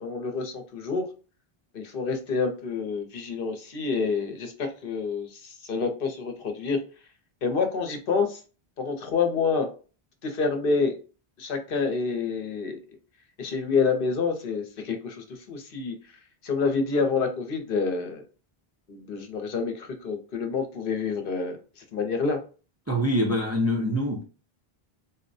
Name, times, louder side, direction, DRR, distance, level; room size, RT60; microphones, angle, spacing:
voice 1, 0.0-1.1 1.7-6.8 7.4-8.4 8.8-9.7 10.2-10.9 11.4-12.8 13.4-15.9 16.4-18.2 18.9-22.4, left 4 dB, 65° left, 0.8 m, -28 dB
voice 2, 22.9-24.2, equal, 20° right, 0.4 m, -24 dB
4.0 x 2.1 x 2.6 m
omnidirectional pair, 1.0 m